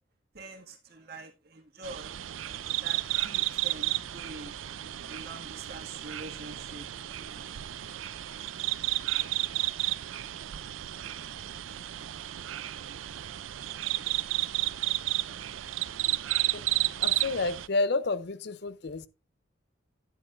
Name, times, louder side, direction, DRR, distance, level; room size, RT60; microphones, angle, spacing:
voice 1, 0.3-2.2 2.8-4.5 5.1-6.9 7.1-8.0 8.5-8.6 8.8-8.9, right 2 dB, 50° right, 1.8 m, -46 dB
sound 1, 1.8-17.7, right 15 dB, 80° right, 0.5 m, -32 dB
voice 2, 17.0-19.1, left 3 dB, 55° left, 0.6 m, -30 dB
11.0 x 9.4 x 2.5 m
head